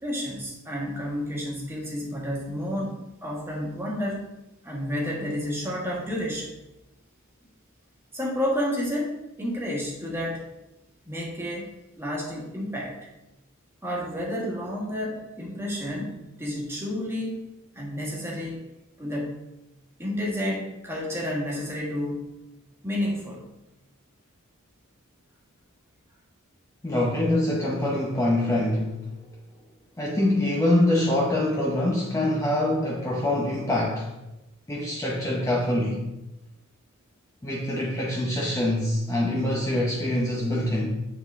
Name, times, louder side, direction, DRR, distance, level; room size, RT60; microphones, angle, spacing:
voice 1, 0.0-4.3 4.6-6.5 8.1-10.5 11.1-11.7 12.0-12.9 13.8-18.7 19.0-19.4 20.0-22.3 22.8-23.5, equal, 10° right, -4 dB, 1.5 m, -30 dB
voice 2, 26.8-29.0 30.0-34.1 34.7-36.1 37.4-40.9, left 1 dB, 15° left, -4 dB, 0.7 m, -24 dB
8.3 x 4.1 x 3.5 m, 0.97 s
head